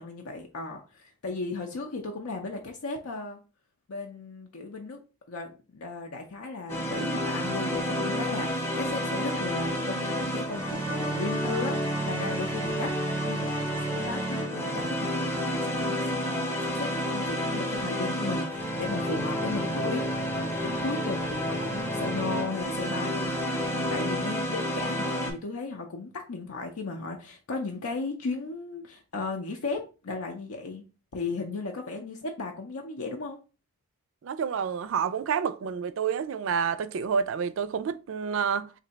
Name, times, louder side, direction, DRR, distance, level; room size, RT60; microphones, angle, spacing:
voice 1, 0.0-3.4 3.9-5.0 5.3-12.9 13.2-20.0 20.3-30.8 31.1-33.4, left 3 dB, 75° left, 0.6 m, -35 dB
sound 1, 6.7-25.3, equal, 10° left, 0.6 m, -30 dB
voice 2, 34.2-38.7, right 6 dB, 60° right, 0.3 m, -29 dB
3.2 x 2.7 x 3.9 m
head